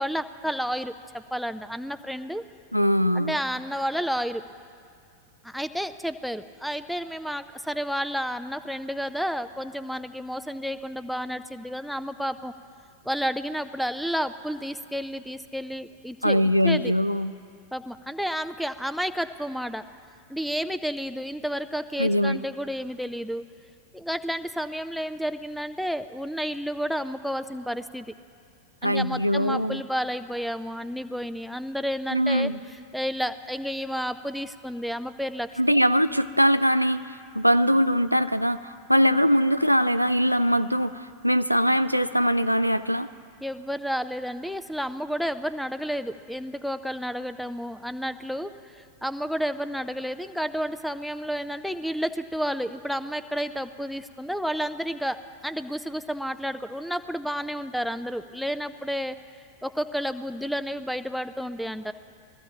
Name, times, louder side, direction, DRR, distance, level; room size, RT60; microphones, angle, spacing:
voice 1, 0.0-2.4 3.1-4.4 5.4-12.5 13.0-16.9 17.7-19.8 20.3-23.4 23.9-28.1 28.8-35.8 43.4-59.2 59.6-61.9, equal, ahead, 12 dB, 0.4 m, -31 dB
voice 2, 2.7-3.4 16.2-17.3 22.0-22.4 28.8-29.8 32.1-32.6 35.6-43.1, equal, 90° right, 12 dB, 0.3 m, -22 dB
21.0 x 14.5 x 2.9 m, 2.3 s
figure-of-eight pair, 90°, 0 cm